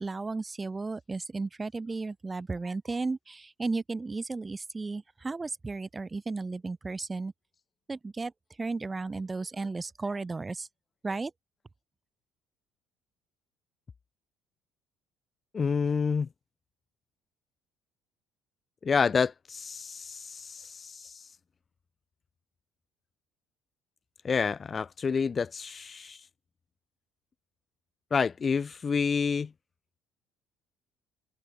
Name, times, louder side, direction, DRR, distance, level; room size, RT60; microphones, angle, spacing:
voice 1, 0.0-7.3 7.9-8.3 8.6-10.7 11.0-11.3, right 3 dB, 25° right, 2.3 m, -34 dB
voice 2, 15.5-16.3 18.8-21.2 24.2-26.2 28.1-29.5, left 5 dB, 35° left, 0.7 m, -28 dB
hypercardioid pair, 70°, 0 cm